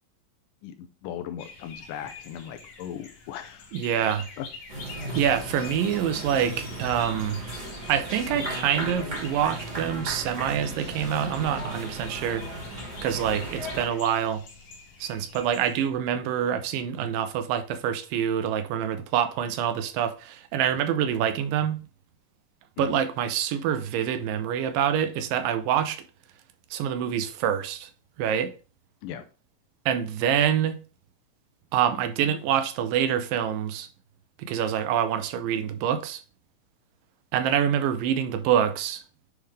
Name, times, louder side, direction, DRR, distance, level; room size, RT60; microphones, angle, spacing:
voice 1, 0.6-3.7 4.0-4.5 22.8-23.0 29.0-29.2, left 10 dB, 80° left, 2.1 m, -38 dB
sound 1, 1.4-15.8, left 4 dB, 60° left, 2.2 m, -45 dB
voice 2, 3.7-4.3 5.1-7.4 7.9-12.4 13.0-14.4 15.0-21.8 22.8-26.0 26.7-27.9 28.2-28.5 29.9-30.8 31.7-33.9 34.4-36.2 37.3-39.0, right 9 dB, 80° right, 2.3 m, -26 dB
sound 2, 4.7-13.9, right 1 dB, 20° right, 1.2 m, -36 dB
9.7 x 3.6 x 3.3 m
omnidirectional pair, 4.1 m